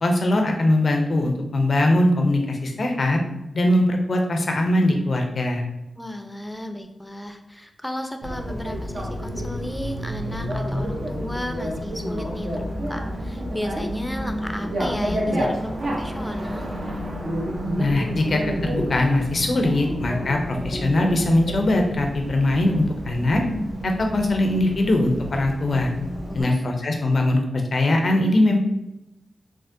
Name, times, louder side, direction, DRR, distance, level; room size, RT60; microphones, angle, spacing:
voice 1, 0.0-3.2 3.5-5.6 17.8-23.4 23.8-25.9 26.3-27.4 27.7-28.6, left 1 dB, 65° left, 3 dB, 0.5 m, -21 dB
voice 2, 6.0-16.7 26.3-26.6, left 1 dB, 10° left, 6 dB, 0.4 m, -33 dB
Bicycle, 8.2-26.4, equal, 80° right, 0.7 m, -30 dB
3.5 x 2.1 x 2.6 m, 0.91 s
cardioid pair, 45°, 0 cm